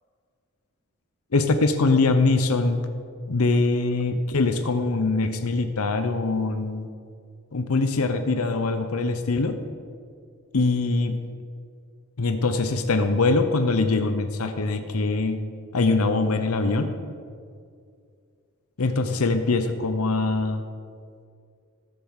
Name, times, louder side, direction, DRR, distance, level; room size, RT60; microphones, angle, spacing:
voice 1, 1.3-2.8 3.3-6.9 7.5-9.6 10.5-11.2 12.2-15.4 15.7-16.9 18.8-20.6, left 3 dB, 85° left, 8 dB, 0.8 m, -23 dB
13.5 x 7.0 x 6.5 m, 2.3 s
head